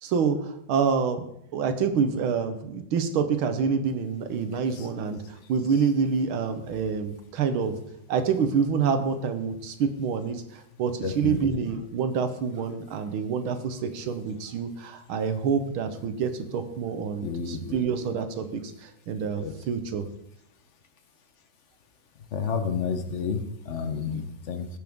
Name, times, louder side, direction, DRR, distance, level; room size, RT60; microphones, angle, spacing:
voice 1, 0.0-1.3 1.5-7.8 8.1-20.0 24.1-24.2, right 6 dB, 90° right, 8 dB, 1.9 m, -27 dB
voice 2, 11.0-11.4 17.2-17.8 19.4-19.5 22.3-24.7, left 6 dB, 50° left, 8 dB, 1.0 m, -30 dB
17.0 x 6.6 x 3.6 m, 0.75 s
omnidirectional pair, 2.2 m